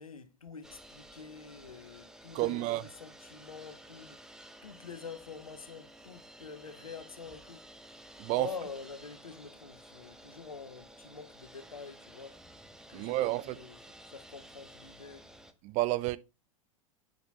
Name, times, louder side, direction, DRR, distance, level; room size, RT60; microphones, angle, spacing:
voice 1, 0.0-4.3 4.6-7.7 8.3-12.5 12.9-15.3, left 5 dB, 90° left, 1.0 m, -47 dB
sound 1, 0.6-15.5, right 1 dB, 5° right, 0.8 m, -53 dB
voice 2, 2.3-2.8 8.2-8.5 12.9-13.5 15.6-16.2, right 17 dB, 40° right, 0.6 m, -30 dB
7.0 x 5.1 x 4.1 m
hypercardioid pair, 90°, 17 cm